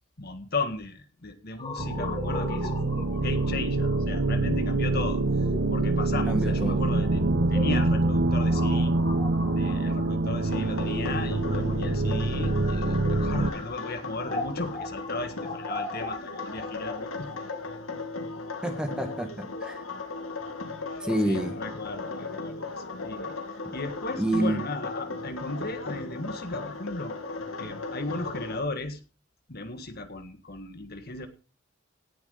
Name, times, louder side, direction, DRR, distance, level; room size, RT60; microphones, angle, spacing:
voice 1, 0.2-5.2 5.7-9.0 9.6-17.3 20.9-27.2 27.6-29.0 29.5-31.3, left 3 dB, 50° left, 8 dB, 1.7 m, -36 dB
sound 1, 1.6-11.4 12.2-19.1, left 2 dB, 25° left, 2.6 m, -40 dB
sound 2, 1.8-13.5, right 2 dB, 60° right, 1.1 m, -25 dB
voice 2, 6.3-6.8 18.6-19.8 21.0-21.5 24.2-24.6, right 1 dB, 5° right, 4 dB, 2.2 m, -28 dB
sound 3, 10.4-28.6, left 3 dB, 90° left, 2.1 m, -37 dB
17.5 x 7.1 x 5.3 m, 0.34 s
head